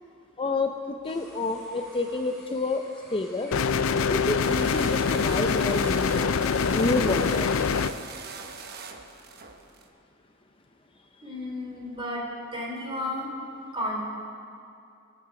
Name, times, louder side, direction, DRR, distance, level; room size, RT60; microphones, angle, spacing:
voice 1, 0.4-3.5 3.9-7.5, left 3 dB, 25° left, 5 dB, 0.5 m, -29 dB
sound 1, 1.0-7.6, equal, 5° left, 4.2 m, -51 dB
sound 2, 3.5-7.9, left 5 dB, 85° left, 0.5 m, -24 dB
sound 3, 4.4-9.9, right 5 dB, 50° right, 1.0 m, -42 dB
voice 2, 11.2-12.2 12.5-13.3 13.7-14.0, left 1 dB, 25° right, -3 dB, 3.2 m, -32 dB
24.5 x 8.9 x 4.9 m, 2.6 s
head